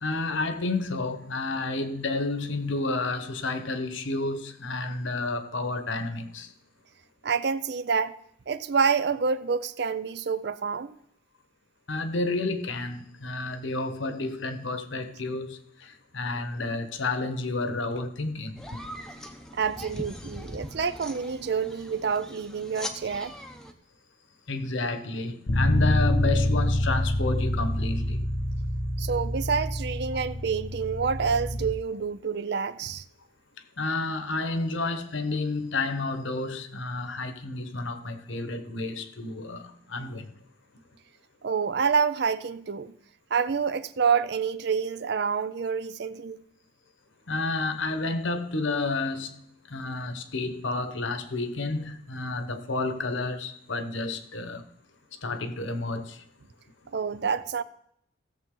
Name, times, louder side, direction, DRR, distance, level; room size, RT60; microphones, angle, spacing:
voice 1, 0.0-6.5 11.9-18.8 24.5-28.2 33.8-40.3 47.3-49.4 49.7-54.7 55.1-56.2, left 3 dB, 70° left, 1.1 m, -30 dB
voice 2, 7.2-8.2 8.5-10.9 19.5-23.3 29.0-33.0 41.4-42.9 43.3-46.4 56.9-57.6, right 6 dB, 55° right, 0.5 m, -27 dB
sound 1, 18.6-23.7, equal, 5° left, 0.7 m, -41 dB
Bass guitar, 25.5-31.7, left 1 dB, 85° left, 1.5 m, -26 dB
16.5 x 7.4 x 3.8 m
head